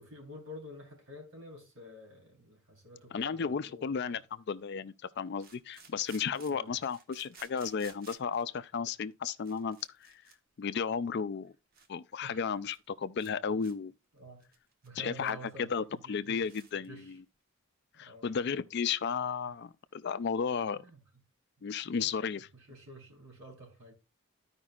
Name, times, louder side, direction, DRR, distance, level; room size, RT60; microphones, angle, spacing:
voice 1, 0.0-4.2 6.5-6.8 12.2-12.4 14.1-14.5 14.8-17.1 17.9-18.3 20.8-21.0 22.0-23.9, equal, 65° right, 3.6 m, -50 dB
voice 2, 3.1-4.2 4.5-10.2 10.6-11.5 11.9-13.9 15.0-17.2 18.0-20.8 21.6-22.5, left 6 dB, 50° left, 0.4 m, -34 dB
sound 1, 5.4-8.4 9.1-9.2 9.4-10.4 10.6-10.8 11.3-11.4 11.7-11.9 12.2-12.3 12.5-12.9 13.2-13.3 13.6-13.7 14.2-15.4 15.7-15.8 16.1-16.2 16.4-16.9, right 5 dB, 40° right, 1.0 m, -56 dB
14.0 x 5.2 x 2.4 m
head